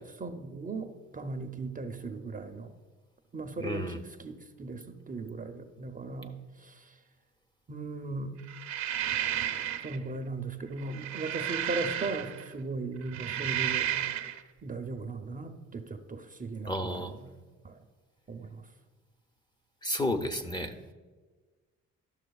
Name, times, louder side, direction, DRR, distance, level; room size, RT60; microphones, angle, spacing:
voice 1, 0.2-0.9 1.1-2.7 3.3-4.8 5.1-6.8 7.7-8.3 9.8-13.9 14.6-17.3 17.6-17.7 18.3-18.6, right 3 dB, 30° right, 7 dB, 0.6 m, -37 dB
voice 2, 3.6-4.0 16.7-17.1 19.8-20.7, left 1 dB, 15° left, 6 dB, 0.6 m, -32 dB
sound 1, 8.5-10.0 10.8-12.5 13.0-14.4, right 11 dB, 65° right, 0.7 m, -32 dB
12.0 x 6.2 x 2.3 m, 1.3 s
cardioid pair, 90°, 30 cm